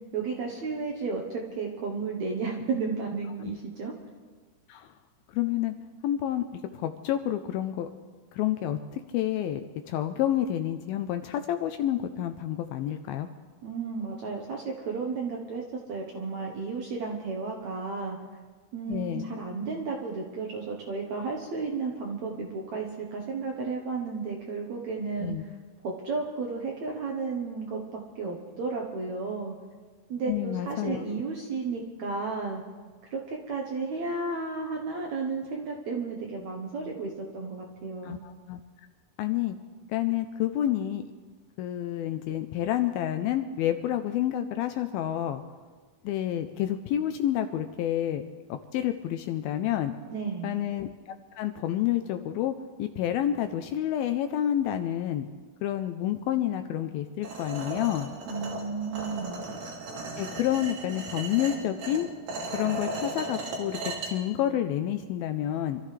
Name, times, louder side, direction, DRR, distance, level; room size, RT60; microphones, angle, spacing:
voice 1, 0.1-3.9 13.6-15.6 15.9-18.2 18.7-25.3 25.8-29.5 30.1-32.6 33.1-38.2 50.1-50.6 58.3-59.4, right 4 dB, 65° right, 0 dB, 1.8 m, -33 dB
voice 2, 5.3-5.7 6.0-7.9 8.3-13.3 18.9-19.3 25.2-25.4 30.3-31.2 38.0-38.6 39.2-39.6 39.9-41.0 41.6-45.4 46.0-48.2 48.5-49.9 50.4-52.5 52.8-55.3 55.6-58.1 60.2-62.1 62.5-63.8 64.1-65.8, left 11 dB, 80° left, 8 dB, 2.2 m, -29 dB
sound 1, 57.2-64.1, right 2 dB, 90° right, 4.5 m, -36 dB
26.0 x 13.5 x 3.3 m, 1.4 s
omnidirectional pair, 4.7 m